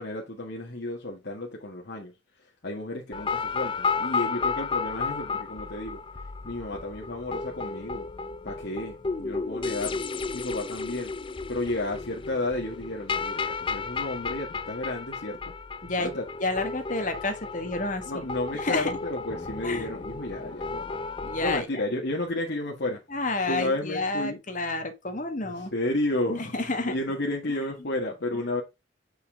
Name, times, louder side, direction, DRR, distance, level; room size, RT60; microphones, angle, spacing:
voice 1, 0.0-8.1 8.4-10.1 10.3-11.1 11.5-15.5 16.0-16.3 18.1-21.0 21.4-23.0 23.4-24.4 25.4-28.6, left 2 dB, 55° left, 1.5 m, -32 dB
sound 1, 3.1-21.6, left 4 dB, 25° left, 0.5 m, -33 dB
voice 2, 16.4-18.2 18.6-18.9 19.6-19.9 21.2-21.8 23.1-25.7 26.4-26.9, left 2 dB, 40° left, 1.6 m, -30 dB
7.1 x 5.6 x 3.7 m
head